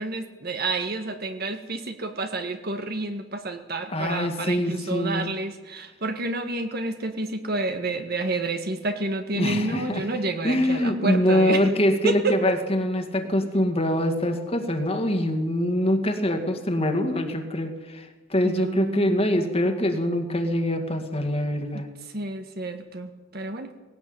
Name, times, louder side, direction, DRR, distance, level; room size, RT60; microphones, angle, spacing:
voice 1, 0.0-11.6 12.0-12.4 18.4-19.1 21.7-21.8 22.1-23.7, right 2 dB, 50° right, 6 dB, 1.8 m, -29 dB
voice 2, 3.9-5.3 9.3-10.0 10.4-21.9, left 1 dB, 30° left, 6 dB, 2.1 m, -24 dB
19.5 x 17.5 x 8.9 m, 1.2 s
head